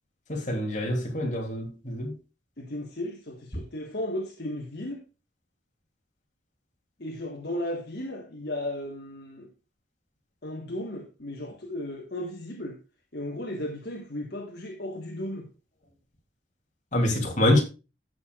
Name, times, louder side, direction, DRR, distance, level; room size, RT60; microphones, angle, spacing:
voice 1, 0.3-2.1 16.9-17.6, left 1 dB, 40° left, 3.0 m, -25 dB
voice 2, 2.6-5.0 7.0-9.5 10.4-12.8 13.1-15.5, left 1 dB, 55° left, 1.5 m, -35 dB
15.5 x 6.4 x 2.4 m
head